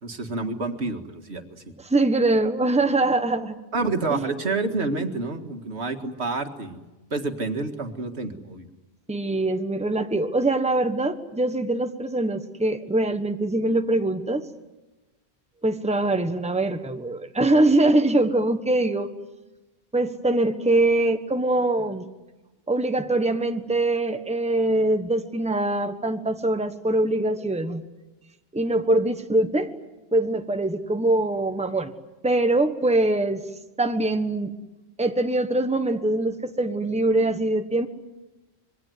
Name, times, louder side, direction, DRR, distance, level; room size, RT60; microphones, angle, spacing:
voice 1, 0.0-1.6 3.7-6.8 7.1-8.7, right 3 dB, 80° right, 6 dB, 2.2 m, -28 dB
voice 2, 1.8-3.6 4.1-4.3 9.1-14.5 15.6-19.1 19.9-22.1 22.7-27.8 28.5-29.7 30.1-31.9 32.2-33.4 33.8-34.5 35.0-37.9, right 2 dB, 5° right, 8 dB, 1.3 m, -23 dB
26.0 x 22.5 x 9.4 m, 1.1 s
omnidirectional pair, 1.1 m